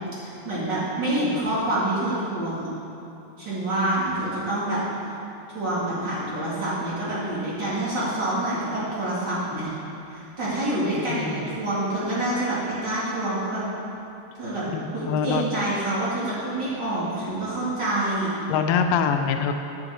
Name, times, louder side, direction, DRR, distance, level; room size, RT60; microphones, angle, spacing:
voice 1, 0.2-2.7 3.4-4.8 5.5-9.7 10.1-13.6 14.4-14.6 14.9-18.4, right 1 dB, 35° right, -9 dB, 2.8 m, -27 dB
voice 2, 14.7-15.4 18.5-19.5, left 6 dB, 85° left, 5 dB, 2.3 m, -24 dB
13.0 x 7.1 x 3.8 m, 3.0 s
omnidirectional pair, 4.0 m